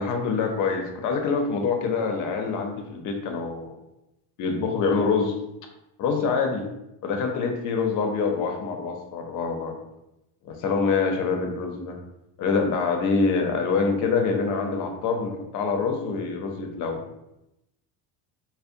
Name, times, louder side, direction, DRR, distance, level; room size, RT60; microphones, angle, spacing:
voice 1, 0.0-3.7 4.4-5.3 6.0-6.7 7.0-9.8 10.4-12.0 12.4-17.0, left 4 dB, 45° left, 3 dB, 0.4 m, -25 dB
2.6 x 2.0 x 2.4 m, 0.89 s
cardioid pair, 135°, 43 cm